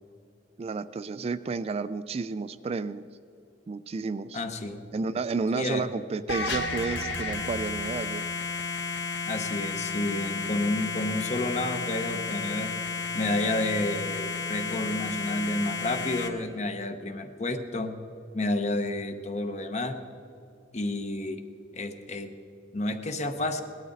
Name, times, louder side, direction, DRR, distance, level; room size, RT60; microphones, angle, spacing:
voice 1, 0.6-3.1 3.7-4.4 4.9-8.2, right 4 dB, 35° right, 13 dB, 0.3 m, -31 dB
voice 2, 4.3-4.8 5.5-5.8 9.3-12.7 13.1-17.9 18.3-20.0 20.7-21.4 21.7-22.3 22.7-23.6, left 2 dB, 40° left, 7 dB, 0.9 m, -30 dB
sound 1, 6.3-16.3, left 4 dB, 80° left, 1.2 m, -32 dB
18.5 x 12.5 x 4.0 m, 2.6 s
head